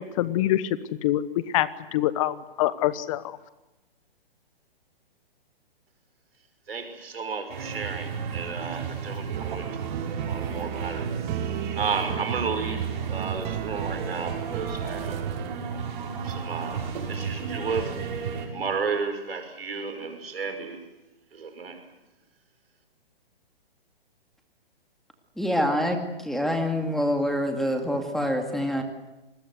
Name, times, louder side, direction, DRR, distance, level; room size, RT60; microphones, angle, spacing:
voice 1, 0.0-3.4, left 13 dB, 35° left, 16 dB, 1.0 m, -26 dB
voice 2, 6.7-9.9 10.2-11.1 11.8-15.2 16.2-17.9 18.5-20.8 21.3-21.8, right 5 dB, 75° right, 7 dB, 5.9 m, -33 dB
sound 1, 7.5-18.5, right 6 dB, 50° right, 6.4 m, -33 dB
sound 2, 9.3-15.6, right 9 dB, 30° right, 1.9 m, -35 dB
voice 3, 25.4-28.8, equal, ahead, 4 dB, 2.3 m, -26 dB
28.0 x 21.0 x 8.1 m, 1.0 s
hypercardioid pair, 130°, 30 cm